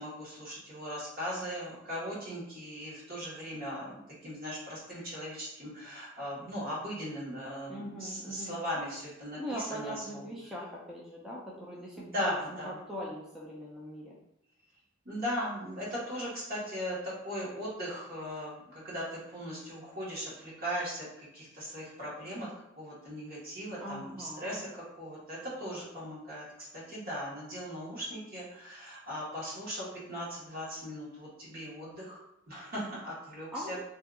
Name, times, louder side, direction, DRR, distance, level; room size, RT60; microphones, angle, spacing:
voice 1, 0.0-9.9 11.9-12.7 15.0-18.5 18.8-21.1 21.3-22.5 22.8-24.6 25.0-32.2 32.5-33.8, equal, 50° right, -6 dB, 1.3 m, -38 dB
voice 2, 7.7-8.6 9.4-14.2 23.8-24.7 33.5-33.8, equal, ahead, -6 dB, 0.4 m, -41 dB
2.7 x 2.4 x 3.6 m, 0.81 s
head